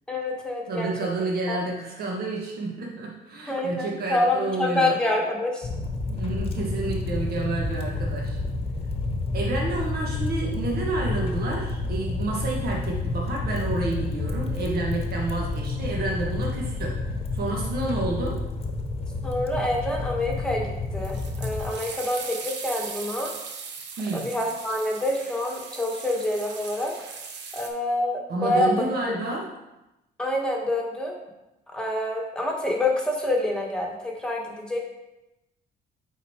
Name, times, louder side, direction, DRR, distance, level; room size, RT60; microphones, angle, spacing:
voice 1, 0.1-0.9 1.5-1.6 3.5-5.7 19.2-23.3 24.1-26.9 27.5-28.9 30.2-31.1 31.7-34.8, left 1 dB, 5° left, -1 dB, 1.4 m, -27 dB
voice 2, 0.7-4.9 6.1-8.4 9.3-18.4 24.0-24.3 28.3-29.5, right 3 dB, 60° right, -2 dB, 1.6 m, -30 dB
sound 1, 5.6-21.7, left 3 dB, 35° left, 1.0 m, -29 dB
sound 2, 21.0-27.7, right 5 dB, 80° right, 1.0 m, -39 dB
9.1 x 4.2 x 4.4 m, 0.95 s
cardioid pair, 125°, 18 cm